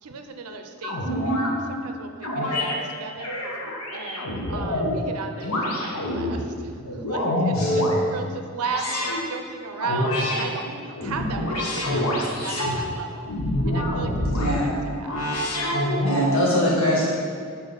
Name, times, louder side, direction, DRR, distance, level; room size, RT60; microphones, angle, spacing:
voice 1, 0.0-3.4 3.9-13.3 13.7-15.2 15.5-15.8, right 5 dB, 80° right, 6 dB, 0.5 m, -36 dB
sound 1, 0.8-1.5 2.2-2.7 3.2-5.0 5.4-6.3 6.8-8.0 8.6-9.2 9.8-10.4 10.9-12.8 13.3-14.5 15.0-16.3, left 1 dB, 90° left, 1.0 m, -26 dB
voice 2, 14.2-14.7 15.8-17.1, equal, 60° left, -6 dB, 1.6 m, -23 dB
6.8 x 4.3 x 4.0 m, 2.1 s
head